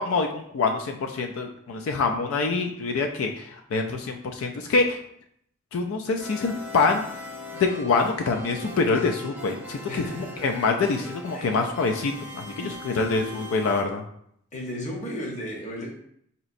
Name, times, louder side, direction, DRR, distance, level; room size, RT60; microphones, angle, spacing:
voice 1, 0.0-5.0 5.7-7.0 7.5-14.0, left 4 dB, 85° left, 4 dB, 0.3 m, -25 dB
sound 1, 6.2-13.8, left 1 dB, 10° right, 0.6 m, -40 dB
voice 2, 9.9-10.3 11.3-11.6 12.6-12.8 14.5-15.9, equal, 35° left, -1 dB, 0.7 m, -34 dB
4.1 x 2.8 x 2.5 m, 0.69 s
head